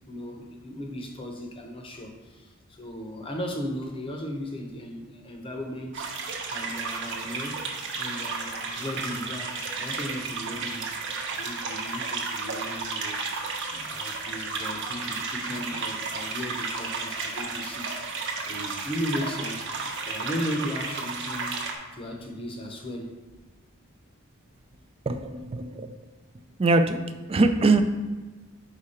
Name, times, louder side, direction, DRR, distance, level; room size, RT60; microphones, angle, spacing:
voice 1, 0.1-6.1 6.5-7.7 8.0-10.9 11.4-13.2 13.7-19.7 20.1-21.6 21.9-23.2, equal, 25° left, 2 dB, 0.8 m, -36 dB
sound 1, 5.9-21.7, right 4 dB, 55° right, 0.8 m, -33 dB
voice 2, 25.1-25.9 26.6-27.0 27.3-27.8, right 3 dB, 25° right, 7 dB, 0.3 m, -22 dB
5.0 x 4.7 x 4.2 m, 1.3 s
head